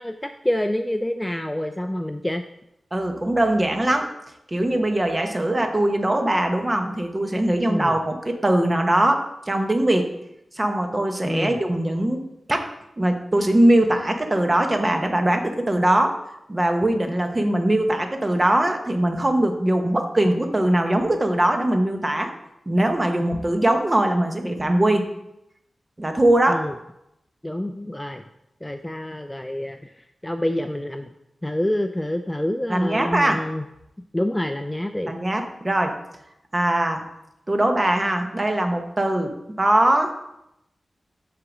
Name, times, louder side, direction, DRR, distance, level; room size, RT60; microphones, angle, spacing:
voice 1, 0.0-2.4 7.7-8.0 11.2-11.6 26.5-26.7 27.4-28.2 28.6-29.9 30.2-31.1 31.4-33.6 34.1-35.1, left 1 dB, 10° left, 7 dB, 0.3 m, -27 dB
voice 2, 2.9-4.1 4.5-10.1 10.6-12.7 13.0-16.1 16.5-22.3 22.7-25.1 26.0-26.6 32.7-33.4 35.1-36.0 36.5-37.0 37.5-40.1, right 1 dB, 25° right, 5 dB, 0.8 m, -21 dB
7.8 x 3.8 x 6.0 m, 0.84 s
wide cardioid pair, 130°, 0 cm